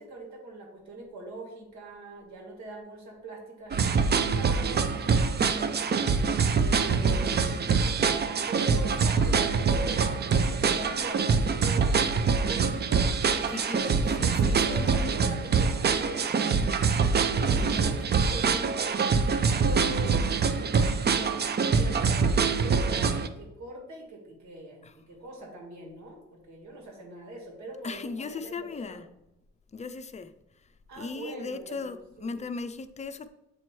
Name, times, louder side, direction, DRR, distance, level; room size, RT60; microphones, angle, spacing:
voice 1, 0.0-5.9 6.5-7.8 8.3-14.0 14.3-16.3 17.3-29.0 30.9-32.3, right 1 dB, 70° right, 2.2 m, -42 dB
sound 1, 3.7-23.3, right 5 dB, 35° right, 0.5 m, -25 dB
voice 2, 13.5-15.2 17.5-18.5 24.8-24.9 27.8-29.1 29.7-30.3 31.0-33.3, left 4 dB, 25° left, 0.5 m, -38 dB
7.8 x 2.9 x 4.5 m
cardioid pair, 90°, 30 cm